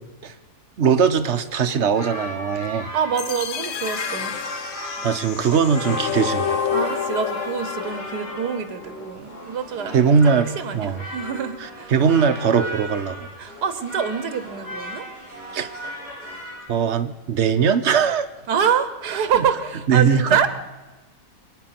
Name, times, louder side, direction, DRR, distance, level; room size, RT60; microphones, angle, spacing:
voice 1, 0.8-2.9 5.0-6.6 9.9-11.0 11.9-13.3 15.5-15.7 16.7-18.3 19.4-19.5 19.9-20.4, right 6 dB, 50° right, 10 dB, 1.0 m, -20 dB
sound 1, 1.5-16.7, equal, 80° left, 8.0 m, -36 dB
voice 2, 2.9-4.3 6.7-10.2 10.6-11.9 13.4-15.1 18.5-20.5, right 7 dB, 85° right, 11 dB, 1.7 m, -25 dB
sound 2, 3.2-9.2, left 7 dB, 55° left, 1.0 m, -29 dB
26.0 x 9.5 x 5.9 m, 1.2 s
omnidirectional pair, 1.7 m